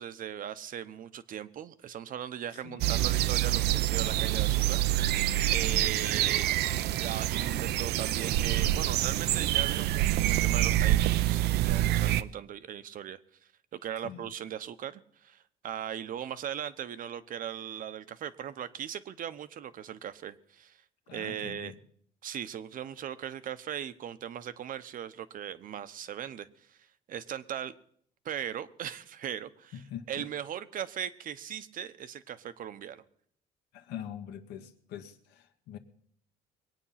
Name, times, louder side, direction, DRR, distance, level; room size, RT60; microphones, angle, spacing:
voice 1, 0.0-4.8 5.5-6.5 7.0-13.2 13.7-20.8 21.1-21.7 22.2-26.8 27.1-27.7 28.2-29.7 30.1-33.0, right 9 dB, 55° right, 14 dB, 0.9 m, -39 dB
voice 2, 2.5-2.9 5.6-6.0 14.0-14.3 21.1-21.8 29.7-30.3 33.7-35.8, left 9 dB, 85° left, 5 dB, 1.6 m, -44 dB
sound 1, 2.8-12.2, right 14 dB, 75° right, 0.6 m, -26 dB
22.0 x 9.0 x 5.8 m, 0.66 s
cardioid pair, 110°, 17 cm